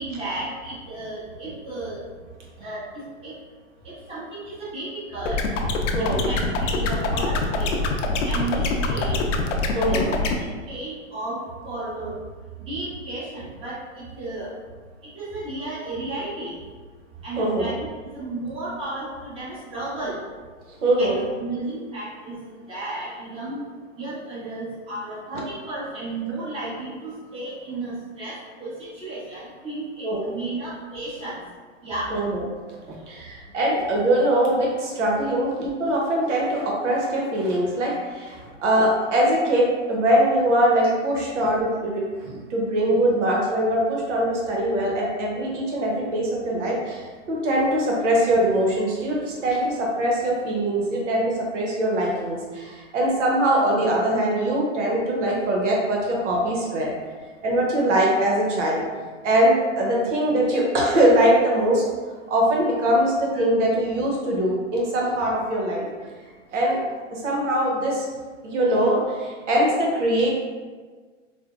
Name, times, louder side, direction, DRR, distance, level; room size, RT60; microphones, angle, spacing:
voice 1, 0.0-2.0 2.6-2.9 3.2-3.3 3.8-5.4 6.0-7.7 8.2-9.2 9.9-11.4 11.6-12.2 12.7-14.5 15.1-16.6 17.2-17.9 18.1-20.2 21.0-22.4 22.7-23.6 24.0-31.4 31.8-32.1, right 2 dB, 15° right, -9 dB, 1.0 m, -33 dB
sound 1, 5.2-10.3, left 3 dB, 75° left, 0.5 m, -24 dB
voice 2, 9.7-10.0 17.4-17.7 20.8-21.2 30.0-30.3 32.1-32.4 33.1-56.9 57.4-58.8 59.2-61.8 62.3-65.9 66.5-66.8 67.1-68.0 68.4-70.3, right 1 dB, 70° right, -3 dB, 0.9 m, -22 dB
4.3 x 2.0 x 2.4 m, 1.5 s
hypercardioid pair, 130°, 38 cm